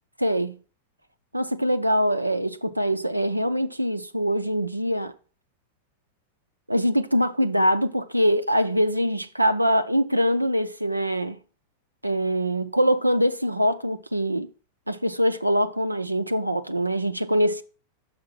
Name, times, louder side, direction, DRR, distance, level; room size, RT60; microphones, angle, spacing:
voice 1, 0.2-0.6 1.3-5.1 6.7-11.4 12.0-14.5 14.9-17.6, equal, 85° right, 0.4 m, -23 dB
6.5 x 5.7 x 6.0 m
figure-of-eight pair, 90°, 0 cm